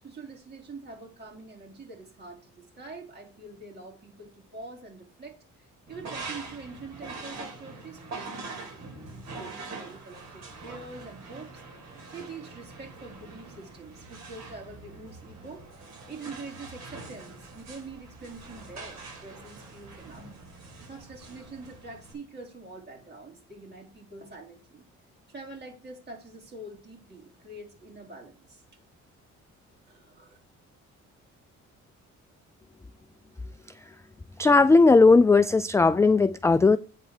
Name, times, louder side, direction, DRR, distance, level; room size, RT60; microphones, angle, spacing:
voice 1, 0.0-20.5 20.8-24.9 25.3-28.6 29.9-30.4, right 3 dB, 35° right, -1 dB, 4.2 m, -45 dB
sound 1, 5.9-22.1, right 3 dB, 60° right, 4.3 m, -43 dB
voice 2, 34.4-36.8, left 3 dB, 10° left, 13 dB, 0.3 m, -17 dB
9.1 x 4.1 x 6.5 m, 0.33 s
cardioid pair, 90°, 30 cm